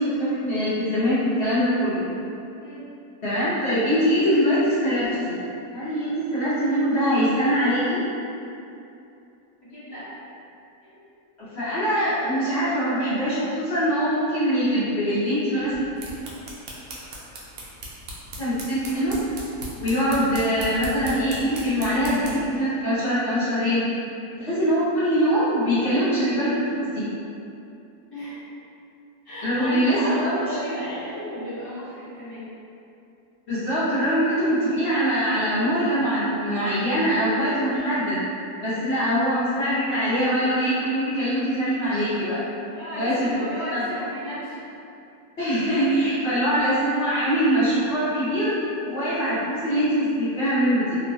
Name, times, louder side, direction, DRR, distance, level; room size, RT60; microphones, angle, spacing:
voice 1, 0.0-2.1 3.2-5.4 5.7-8.0 11.5-15.8 18.4-19.2 19.7-23.8 24.4-27.0 29.4-30.4 33.5-38.2 38.6-42.4 42.9-43.8 45.4-51.0, equal, 50° left, -14 dB, 0.9 m, -23 dB
voice 2, 9.6-10.1 10.8-11.0 28.1-28.4 29.2-32.6 42.7-44.6, equal, 30° left, -16 dB, 0.5 m, -34 dB
sound 1, 15.7-22.5, right 1 dB, 85° right, 1.1 m, -38 dB
3.1 x 2.1 x 2.6 m, 2.7 s
omnidirectional pair, 1.7 m